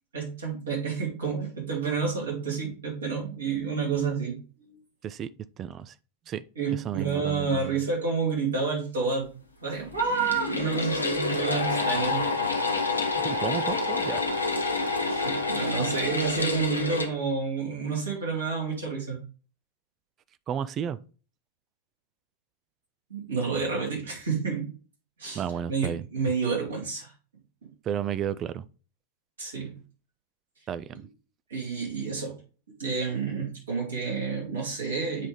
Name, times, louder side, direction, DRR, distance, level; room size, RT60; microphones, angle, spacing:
voice 1, 0.1-4.8 6.5-9.3 9.6-12.3 15.1-19.2 23.1-24.7 25.2-27.1 29.4-29.7 31.5-32.3 32.8-35.3, right 5 dB, 70° right, 2.9 m, -29 dB
voice 2, 5.6-5.9 6.3-6.4 6.8-7.8 13.2-14.2 20.5-21.0 25.3-26.0 27.9-28.6 30.7-31.0, right 9 dB, 30° right, 0.3 m, -32 dB
sound 1, 9.9-17.1, left 3 dB, 80° left, 0.9 m, -28 dB
8.1 x 3.5 x 3.9 m
figure-of-eight pair, 90°, 0 cm